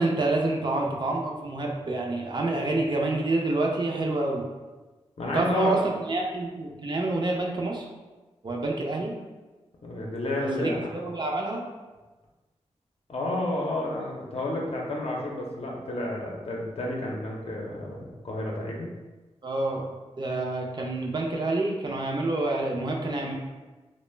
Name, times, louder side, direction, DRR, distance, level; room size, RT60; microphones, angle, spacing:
voice 1, 0.0-4.4 5.3-5.8 6.1-7.9 8.4-9.2 10.6-11.6 19.4-19.9 20.2-23.3, right 2 dB, 40° right, -1 dB, 0.4 m, -27 dB
voice 2, 5.2-5.7 9.8-10.8 13.1-18.9, left 1 dB, 60° left, -2 dB, 0.6 m, -30 dB
2.2 x 2.1 x 3.2 m, 1.2 s
wide cardioid pair, 80°, 12 cm